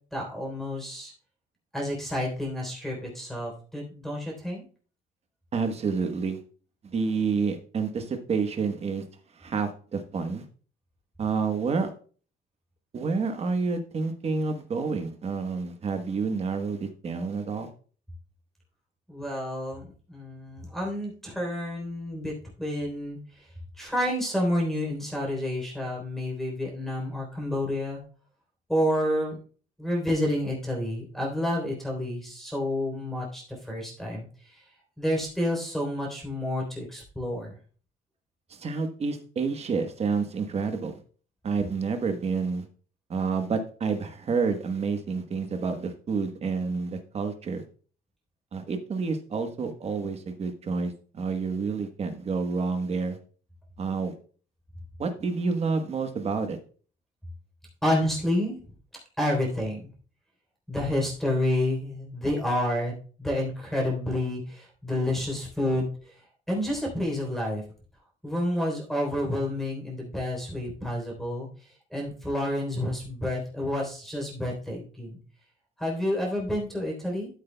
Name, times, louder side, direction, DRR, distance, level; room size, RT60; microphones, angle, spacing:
voice 1, 0.1-1.1 1.7-4.6 19.1-23.5 23.8-28.0 28.7-29.4 29.8-34.6 35.0-37.6 57.8-58.6 59.2-59.9 60.7-62.9 63.2-66.1 66.5-67.6 68.2-71.5 71.9-75.2 75.8-77.3, left 1 dB, ahead, -1 dB, 3.4 m, -29 dB
voice 2, 5.5-6.4 6.9-9.0 9.4-10.4 11.2-11.9 12.9-17.7 38.5-41.0 41.4-42.6 43.1-47.6 48.5-53.2 53.8-54.1 55.0-56.6, right 4 dB, 35° right, 7 dB, 1.2 m, -29 dB
13.0 x 8.1 x 2.2 m, 0.41 s
cardioid pair, 150°, 18 cm